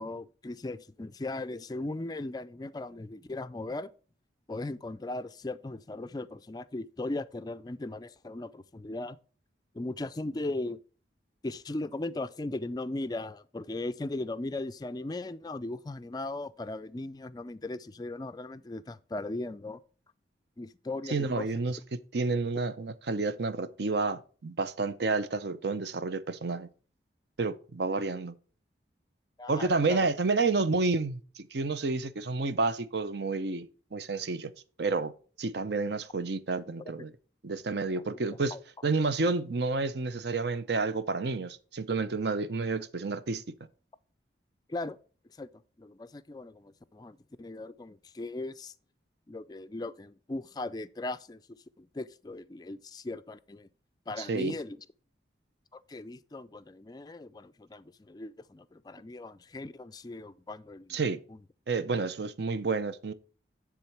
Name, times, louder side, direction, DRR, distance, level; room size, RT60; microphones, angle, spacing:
voice 1, 0.0-3.9 4.5-9.2 9.7-10.8 11.4-19.8 20.6-21.5 29.4-30.1 36.8-36.9 38.1-38.6 44.7-45.0 45.4-45.5 45.8-48.7 49.3-51.4 51.8-53.7 54.1-54.8 55.7-61.0 61.3-61.4, left 2 dB, 20° left, 0.3 m, -38 dB
voice 2, 21.1-26.7 27.4-28.3 29.5-34.5 34.8-35.1 35.4-37.1 37.4-38.5 38.8-43.4 54.2-54.5 60.9-61.2 61.7-63.1, right 3 dB, 65° right, 0.6 m, -30 dB
10.0 x 3.6 x 5.8 m
head